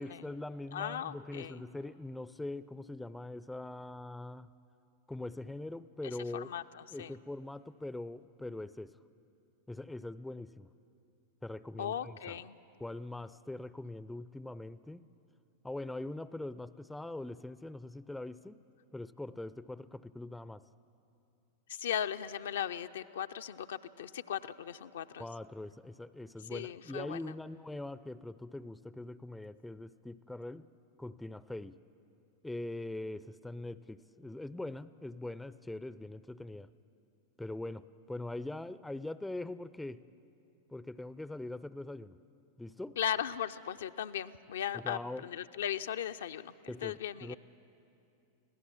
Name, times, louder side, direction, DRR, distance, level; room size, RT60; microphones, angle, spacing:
voice 1, 0.0-4.5 5.1-6.5 6.9-9.0 9.7-10.7 11.4-12.4 12.8-15.1 15.6-18.6 18.9-20.6 25.2-30.7 31.0-31.8 32.4-36.7 37.4-40.0 40.7-42.2 42.6-43.0 44.7-45.3 46.7-47.4, left 2 dB, 5° left, 16 dB, 0.5 m, -42 dB
voice 2, 0.7-1.6 6.3-6.6 7.0-7.1 11.8-12.6 21.7-25.2 26.5-27.2 43.0-46.5 46.8-47.4, left 9 dB, 60° left, 9 dB, 0.5 m, -37 dB
25.0 x 16.5 x 8.8 m, 2.7 s
figure-of-eight pair, 90°, 0 cm